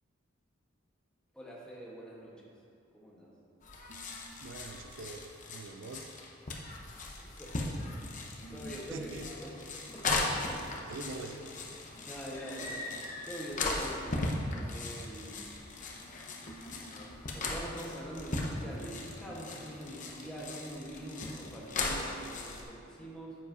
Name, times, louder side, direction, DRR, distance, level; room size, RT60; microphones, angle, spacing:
voice 1, 1.3-2.5 2.9-3.3 7.2-7.8 8.5-9.1 9.4-9.6 9.9-10.6 12.1-12.8 13.3-14.3 14.6-15.5 17.3-23.4, right 1 dB, 5° left, -5 dB, 1.1 m, -44 dB
sound 1, 3.6-22.6, left 2 dB, 40° left, 0.8 m, -38 dB
voice 2, 4.4-6.1 8.9-9.3 10.6-11.5, right 3 dB, 65° right, 5 dB, 0.5 m, -44 dB
9.5 x 7.4 x 2.7 m, 2.6 s
head